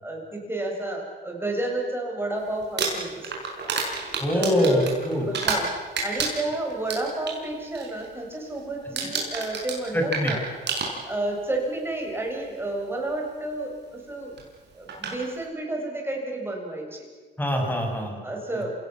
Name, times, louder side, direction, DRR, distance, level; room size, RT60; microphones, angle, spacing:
voice 1, 0.0-3.3 4.3-4.9 5.3-5.7 6.0-10.4 11.0-14.3 14.7-17.1 18.2-18.7, right 2 dB, 10° right, 0 dB, 7.1 m, -31 dB
Crumpling crinkling, 2.6-5.7 6.0-7.4 7.7-8.1 8.3-8.6 9.0-11.3 12.3-12.4 14.4-14.5 14.9-15.2, right 4 dB, 60° right, 6.2 m, -29 dB
voice 2, 4.2-5.3 9.9-10.3 17.4-18.2 18.5-18.6, left 1 dB, 10° left, 2 dB, 6.3 m, -24 dB
27.5 x 17.5 x 7.4 m, 1.4 s
cardioid pair, 90°, 20 cm